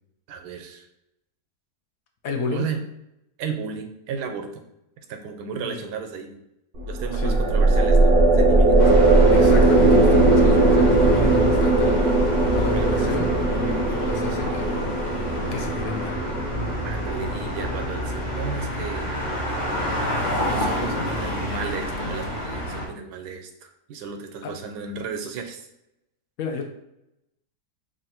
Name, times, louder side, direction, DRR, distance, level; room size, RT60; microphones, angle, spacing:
voice 1, 0.3-0.9 2.5-2.8 3.4-4.6 5.1-6.4 6.9-8.8 12.7-13.1 16.8-19.1 20.5-25.7, right 6 dB, 90° right, 5 dB, 1.2 m, -34 dB
voice 2, 2.2-2.7 5.6-5.9 7.1-7.4 8.8-8.9 9.3-14.9 15.5-16.2 24.4-24.5 26.4-26.7, left 5 dB, 70° left, 3 dB, 1.0 m, -31 dB
sound 1, 6.8-18.2, right 2 dB, 55° right, 0.6 m, -19 dB
sound 2, 8.8-22.9, equal, 40° left, 0.7 m, -28 dB
3.2 x 2.5 x 4.2 m, 0.86 s
omnidirectional pair, 1.7 m